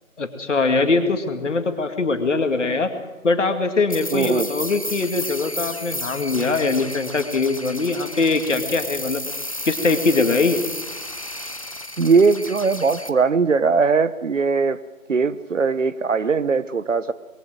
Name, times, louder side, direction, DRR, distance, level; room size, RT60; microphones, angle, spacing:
voice 1, 0.2-2.9 3.2-9.2 9.7-10.6, left 3 dB, 60° left, 7 dB, 2.4 m, -22 dB
sound 1, 3.9-13.1, left 1 dB, 25° left, 0.6 m, -32 dB
voice 2, 4.1-4.5 12.0-14.8 15.1-17.1, right 4 dB, 65° right, 16 dB, 1.1 m, -20 dB
21.5 x 16.5 x 7.9 m, 1.2 s
figure-of-eight pair, 160°, 41 cm